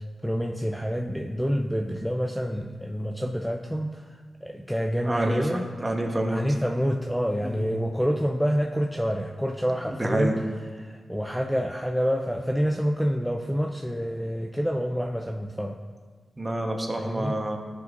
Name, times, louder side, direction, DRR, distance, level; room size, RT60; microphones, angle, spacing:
voice 1, 0.0-5.7 6.3-10.3 10.7-15.8 17.0-17.3, equal, ahead, 2 dB, 0.5 m, -27 dB
voice 2, 5.0-6.4 7.4-7.7 9.8-10.5 16.4-17.6, right 1 dB, 25° right, 2 dB, 1.2 m, -28 dB
13.0 x 6.6 x 2.6 m, 1.5 s
cardioid pair, 70°, 0 cm